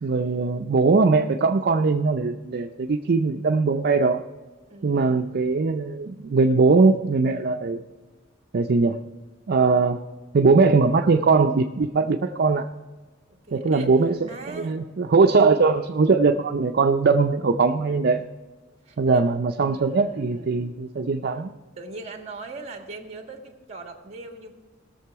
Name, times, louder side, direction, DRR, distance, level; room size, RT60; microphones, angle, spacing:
voice 1, 0.0-4.2 4.8-7.8 8.5-9.0 9.5-10.0 10.3-12.7 13.5-18.2 19.0-21.5, right 4 dB, 50° right, 5 dB, 0.5 m, -20 dB
voice 2, 4.7-5.2 13.3-13.9 14.3-14.8 15.4-15.5 18.8-19.2 19.7-20.8 21.8-24.5, right 3 dB, 35° right, 4 dB, 1.7 m, -40 dB
18.5 x 6.8 x 4.7 m, 1.3 s
head